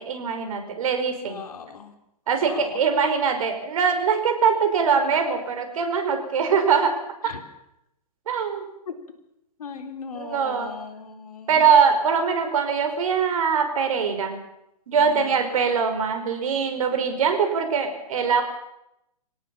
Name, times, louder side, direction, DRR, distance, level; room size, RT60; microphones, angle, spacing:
voice 1, 0.0-1.4 2.3-7.0 8.3-8.6 10.2-10.7 11.5-14.4 14.9-18.4, right 6 dB, 60° right, 7 dB, 5.4 m, -22 dB
voice 2, 1.2-1.9 2.4-2.8 7.2-7.4 8.9-9.0 9.6-11.7 15.0-15.4, left 5 dB, 70° left, 6 dB, 4.0 m, -38 dB
25.0 x 17.5 x 7.3 m, 0.84 s
hypercardioid pair, 125°, 20 cm